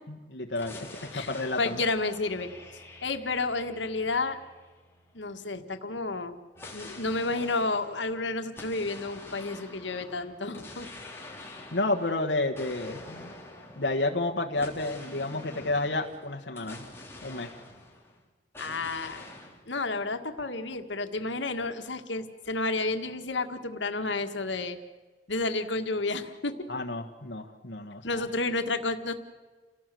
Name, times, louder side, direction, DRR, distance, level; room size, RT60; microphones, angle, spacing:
voice 1, 0.1-1.8 11.7-13.3 13.8-16.9 17.2-17.6 26.7-28.3, left 2 dB, 75° left, 2 dB, 1.5 m, -31 dB
sound 1, 0.5-5.3 6.5-18.2 18.5-19.6, left 2 dB, 15° left, 3.5 m, -47 dB
voice 2, 1.6-2.5 3.0-4.4 5.1-6.3 6.7-10.9 18.6-19.2 19.7-24.8 25.3-26.6 28.0-29.1, left 3 dB, 90° left, 7 dB, 1.8 m, -31 dB
29.0 x 18.0 x 7.7 m, 1.4 s
head